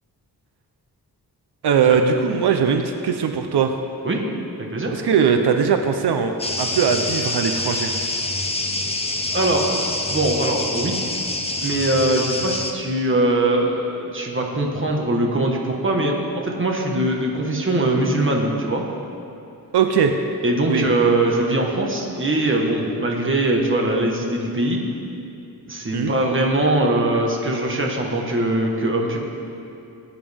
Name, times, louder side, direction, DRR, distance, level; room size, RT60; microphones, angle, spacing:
voice 1, 1.6-3.8 4.9-7.9 19.7-20.2 20.7-20.8 25.9-26.1, right 6 dB, 85° right, 6 dB, 0.8 m, -20 dB
voice 2, 4.6-5.0 9.3-9.8 10.1-11.0 11.6-18.8 20.4-24.8 25.7-29.2, right 1 dB, 30° right, 0 dB, 1.5 m, -21 dB
sound 1, 6.4-12.7, left 2 dB, 15° left, 0.8 m, -26 dB
20.0 x 9.1 x 3.6 m, 2.6 s
wide cardioid pair, 150°, 39 cm